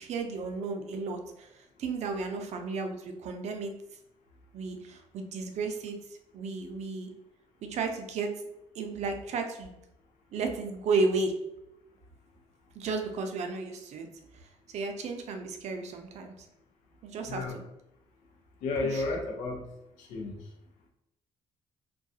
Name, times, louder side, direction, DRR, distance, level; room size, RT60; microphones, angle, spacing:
voice 1, 0.0-3.7 4.5-6.0 6.3-7.1 7.7-8.3 8.7-9.7 10.3-11.3 12.7-14.1 14.4-16.3 17.0-17.6 18.9-19.0, right 4 dB, 65° right, 5 dB, 0.5 m, -33 dB
voice 2, 17.2-17.5 18.6-19.6 20.0-20.3, left 3 dB, 90° left, 0 dB, 0.7 m, -32 dB
2.3 x 2.2 x 2.7 m, 0.86 s
cardioid pair, 90°, 13 cm